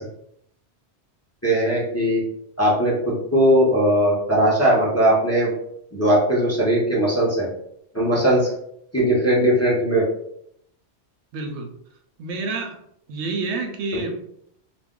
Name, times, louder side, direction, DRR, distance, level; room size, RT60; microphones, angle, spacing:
voice 1, 1.4-2.2 2.6-5.5 5.9-7.5 7.9-8.5 8.9-10.1, right 1 dB, 15° left, -6 dB, 0.6 m, -19 dB
voice 2, 11.3-11.7 12.2-12.8 13.1-14.2, right 3 dB, 80° right, 4 dB, 0.9 m, -28 dB
2.4 x 2.2 x 3.6 m, 0.71 s
omnidirectional pair, 1.1 m